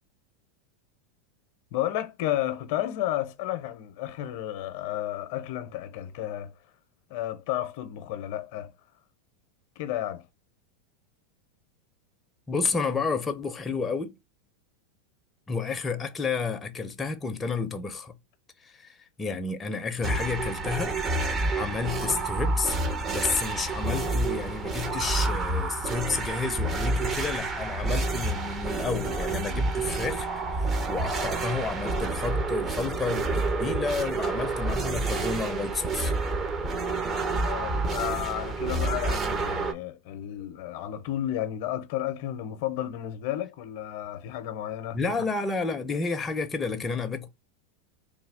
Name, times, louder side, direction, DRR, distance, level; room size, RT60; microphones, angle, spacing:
voice 1, 1.7-6.5 7.1-8.7 9.8-10.2 37.4-45.0, left 13 dB, 60° left, 0.6 m, -32 dB
voice 2, 12.5-14.2 15.5-18.1 18.6-21.0 21.5-22.8 23.1-36.1 44.9-47.3, left 4 dB, 20° left, 0.5 m, -31 dB
sound 1, 20.0-39.7, right 3 dB, 30° right, 0.7 m, -29 dB
3.1 x 2.3 x 3.4 m
hypercardioid pair, 100°, 0 cm